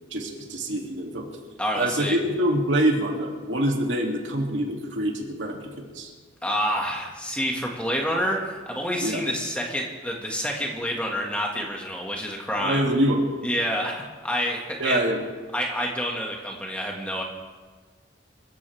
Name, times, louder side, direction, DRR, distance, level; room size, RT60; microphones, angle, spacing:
voice 1, 0.1-1.3 1.7-6.1 9.0-9.2 12.6-13.2 14.8-15.2, right 1 dB, 70° right, 0 dB, 2.8 m, -25 dB
voice 2, 1.6-2.2 6.4-12.8 13.4-15.0 15.5-17.2, equal, 5° left, -1 dB, 1.9 m, -28 dB
26.0 x 15.0 x 3.5 m, 1.4 s
head